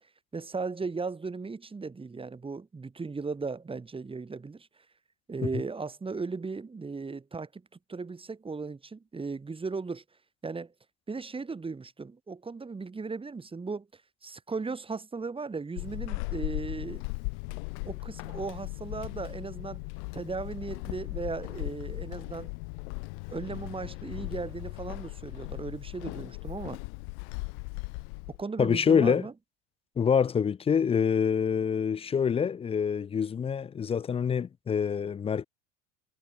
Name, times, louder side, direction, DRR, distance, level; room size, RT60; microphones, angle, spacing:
voice 1, 0.3-4.7 5.3-7.6 7.9-10.0 10.4-10.7 11.1-17.0 17.8-19.8 20.1-22.5 23.3-26.8 28.3-29.3, right 4 dB, 15° right, 2.1 m, -37 dB
Walk footsteps / Squeak, 15.8-28.4, left 37 dB, 70° left, 7.1 m, -38 dB
voice 2, 28.6-29.3 30.0-35.5, left 7 dB, 15° left, 0.4 m, -26 dB
supercardioid pair, 110°, 37 cm